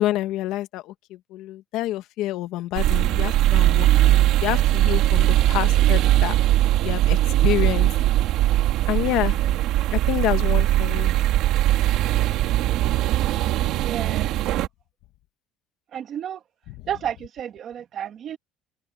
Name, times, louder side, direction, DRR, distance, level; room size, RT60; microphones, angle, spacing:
voice 1, 0.0-6.4 6.8-7.9 8.9-9.4 9.9-11.1, left 15 dB, 55° left, 1.4 m, -28 dB
sound 1, 2.8-14.7, right 14 dB, 55° right, 1.9 m, -20 dB
voice 2, 13.7-14.4 15.9-16.4 16.9-18.4, right 9 dB, 35° right, 1.8 m, -32 dB
open air
cardioid pair, 180°, 0 cm